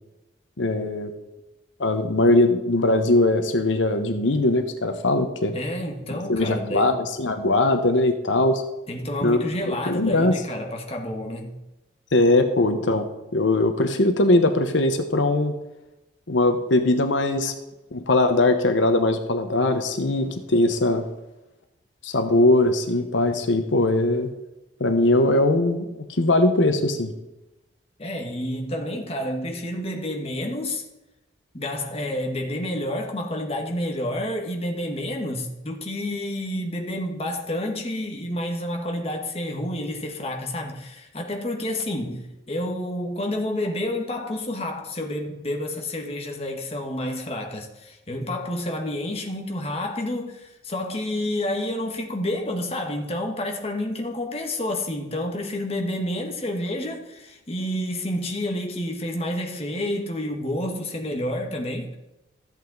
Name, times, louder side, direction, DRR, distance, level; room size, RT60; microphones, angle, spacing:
voice 1, 0.6-1.1 1.8-5.5 6.1-8.6 9.2-10.3 12.1-13.1 13.3-15.6 16.3-17.5 17.9-21.0 22.0-24.3 24.8-27.1, left 2 dB, 85° left, 1.0 m, -21 dB
voice 2, 5.5-6.9 8.9-11.6 28.0-30.8 31.5-62.0, left 1 dB, 30° left, 1.4 m, -29 dB
13.5 x 8.3 x 4.0 m
head